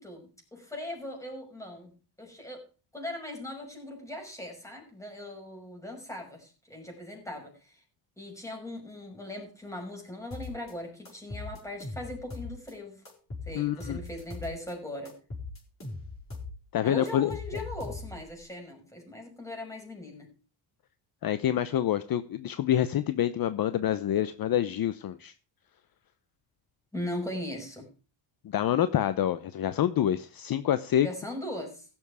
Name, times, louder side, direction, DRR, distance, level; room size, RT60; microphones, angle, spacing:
voice 1, 0.0-1.9 2.2-2.6 2.9-7.8 8.2-13.0 13.5-15.2 16.8-20.3 26.9-27.9 31.0-31.9, left 1 dB, 5° left, 2 dB, 5.7 m, -39 dB
sound 1, 10.3-10.7 11.1-12.7 13.1-14.7 15.1-16.6 16.8-18.3, left 3 dB, 25° left, 5.9 m, -40 dB
voice 2, 13.6-14.0 16.7-17.3 21.2-25.3 28.4-31.1, left 11 dB, 45° left, 13 dB, 0.8 m, -27 dB
16.5 x 7.3 x 4.8 m, 0.36 s
cardioid pair, 110°, 48 cm